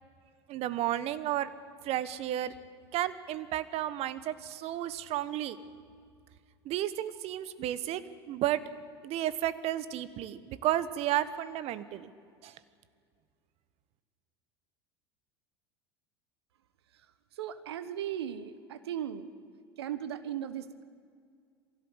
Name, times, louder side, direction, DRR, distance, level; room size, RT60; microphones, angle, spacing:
voice 1, 0.5-1.5 1.8-2.5 2.9-5.6 6.6-8.0 8.3-8.6 9.0-12.1 12.4-12.5, right 13 dB, 50° right, 15 dB, 1.2 m, -32 dB
voice 2, 17.4-19.3 19.8-20.8, right 10 dB, 80° right, 13 dB, 1.3 m, -37 dB
23.0 x 16.0 x 8.1 m, 2.2 s
hypercardioid pair, 80°, 13 cm